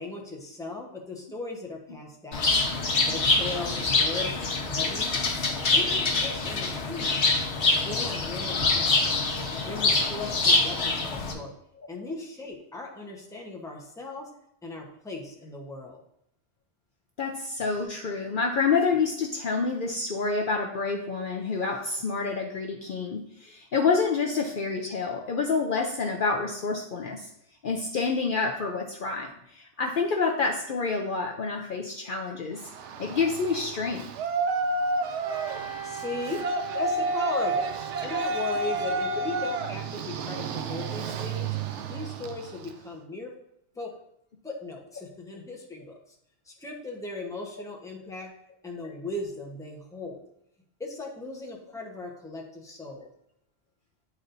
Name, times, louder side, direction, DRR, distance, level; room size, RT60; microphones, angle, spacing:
voice 1, 0.0-2.5 3.1-5.2 5.7-7.1 7.6-9.2 9.6-11.5 11.9-14.3 14.6-16.0 35.8-36.5 36.7-37.7 38.0-41.6 41.9-43.3 43.8-43.9 44.4-46.1 46.5-48.3 48.6-50.2 50.8-53.1, left 2 dB, 5° left, 0 dB, 0.8 m, -38 dB
Bird, 2.3-11.3, left 3 dB, 75° left, 1.3 m, -25 dB
voice 2, 17.2-27.3 27.6-32.6 33.0-34.1, left 4 dB, 55° left, 0 dB, 0.7 m, -28 dB
Yell, 32.6-42.8, right 2 dB, 85° right, 0.9 m, -31 dB
Wind instrument woodwind instrument, 35.2-40.0, right 8 dB, 55° right, 1.4 m, -39 dB
9.6 x 4.2 x 2.6 m, 0.74 s
omnidirectional pair, 1.2 m